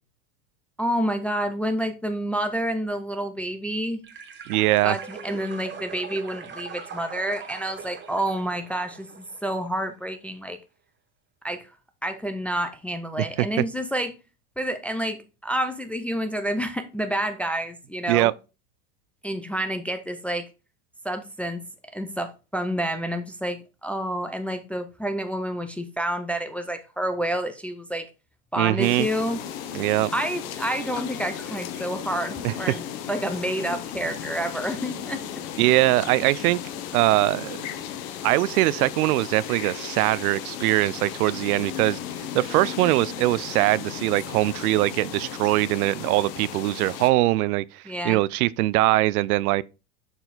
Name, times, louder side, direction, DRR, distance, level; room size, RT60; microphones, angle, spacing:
voice 1, 0.8-4.0 4.8-10.6 11.4-11.7 12.0-14.2 14.6-18.3 19.2-20.5 21.0-21.6 21.9-28.1 28.5-29.4 30.1-35.2 47.9-48.2, right 1 dB, 5° left, 0.4 m, -29 dB
sound 1, 4.0-9.8, right 6 dB, 25° right, 1.1 m, -41 dB
voice 2, 4.5-5.0 18.1-18.3 28.6-29.1 29.7-30.1 32.4-32.5 35.6-36.6 36.9-37.6 38.2-42.0 42.3-49.6, right 18 dB, 75° right, 0.5 m, -22 dB
sound 2, 28.8-47.1, left 9 dB, 65° left, 1.2 m, -35 dB
6.8 x 4.3 x 4.0 m
supercardioid pair, 115°, 45 cm